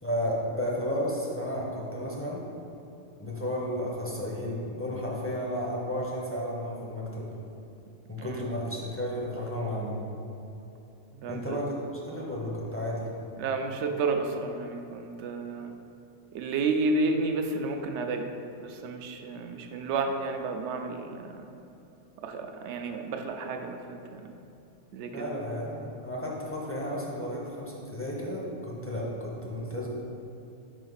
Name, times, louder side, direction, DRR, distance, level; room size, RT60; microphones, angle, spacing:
voice 1, 0.0-2.4 3.2-7.2 8.1-9.9 11.3-13.1 25.1-29.9, equal, 15° left, -4 dB, 0.6 m, -33 dB
voice 2, 8.2-8.5 11.1-11.6 13.4-15.7 16.3-18.3 18.6-21.4 22.2-24.3 24.9-25.3, right 3 dB, 70° right, 5 dB, 0.8 m, -31 dB
5.1 x 5.0 x 4.0 m, 2.8 s
omnidirectional pair, 1.3 m